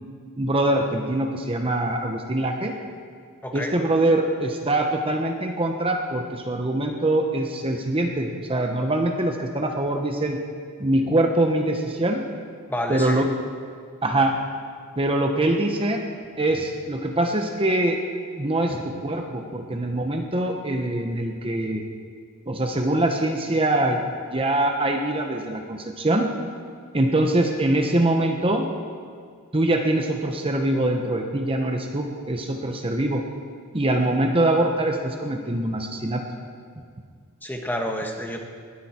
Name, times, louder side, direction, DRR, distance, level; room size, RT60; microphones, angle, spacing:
voice 1, 0.4-2.7 3.5-10.4 10.8-12.3 12.9-13.3 14.0-14.4 15.0-16.0 16.4-18.0 18.4-21.8 22.5-24.0 24.3-26.3 26.9-28.7 29.5-33.2 33.7-36.2, right 1 dB, 25° right, 3 dB, 1.0 m, -23 dB
voice 2, 3.4-3.7 12.7-13.2 18.7-18.8 37.4-38.4, equal, 10° left, 2 dB, 1.3 m, -29 dB
20.5 x 13.0 x 4.4 m, 2.1 s
head